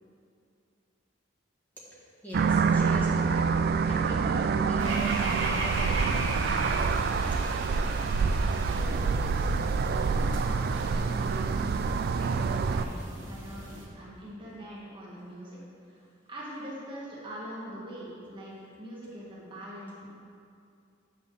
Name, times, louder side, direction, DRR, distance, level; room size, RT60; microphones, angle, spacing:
voice 1, 1.7-7.0 15.2-15.3, equal, 10° left, -7 dB, 1.5 m, -43 dB
sound 1, 2.3-12.9, right 5 dB, 50° right, 0.3 m, -26 dB
sound 2, 4.8-13.9, right 2 dB, 80° right, 1.3 m, -38 dB
voice 2, 8.6-9.5 10.1-15.6 15.8-20.1, equal, 25° right, -6 dB, 1.4 m, -43 dB
8.2 x 7.2 x 3.8 m, 2.4 s
head